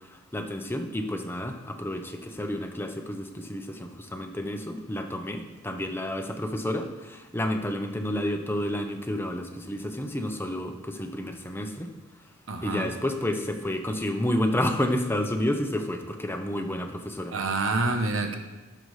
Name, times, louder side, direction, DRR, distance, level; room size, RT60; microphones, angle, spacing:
voice 1, 0.3-11.9 12.6-17.3, left 1 dB, 10° left, 4 dB, 0.8 m, -30 dB
voice 2, 12.5-12.9 17.3-18.4, right 3 dB, 90° right, 5 dB, 1.0 m, -27 dB
15.0 x 6.9 x 3.2 m, 1.2 s
head